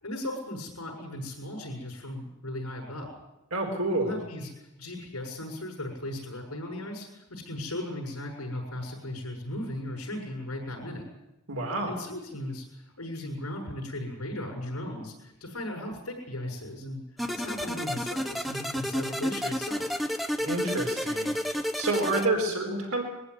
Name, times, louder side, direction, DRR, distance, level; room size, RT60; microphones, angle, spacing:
voice 1, 0.0-3.2 4.0-11.1 11.9-17.0 17.3-19.9, left 1 dB, 85° left, 1 dB, 6.6 m, -37 dB
voice 2, 3.5-4.2 11.5-11.9 20.4-21.3 21.8-23.0, right 2 dB, 75° right, 2 dB, 4.2 m, -28 dB
sound 1, 17.2-22.3, equal, ahead, 1.0 m, -31 dB
22.0 x 15.0 x 9.8 m, 0.91 s
head